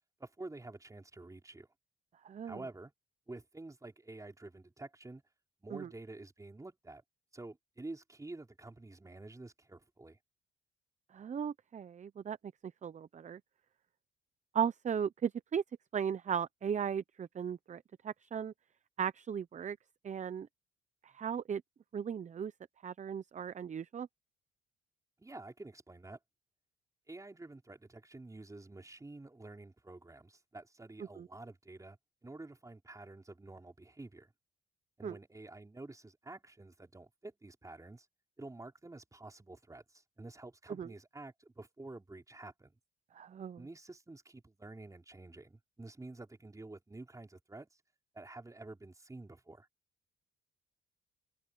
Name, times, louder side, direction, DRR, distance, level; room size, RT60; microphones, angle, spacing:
voice 1, 0.2-1.7 2.4-2.9 3.3-5.2 5.6-7.0 7.3-10.2 25.2-26.2 27.1-32.0 32.2-34.3 35.0-38.1 38.4-42.8 43.6-47.7 48.1-49.7, right 2 dB, 15° right, 4.4 m, -49 dB
voice 2, 2.2-2.6 5.7-5.9 11.1-12.4 12.8-13.4 14.5-15.6 15.9-18.5 19.0-19.8 20.0-20.5 21.0-21.6 21.9-22.5 22.8-24.1 31.2-31.3 35.0-35.2 40.8-40.9 43.1-43.6, right 8 dB, 40° right, 0.7 m, -36 dB
open air
cardioid pair, 90°, 20 cm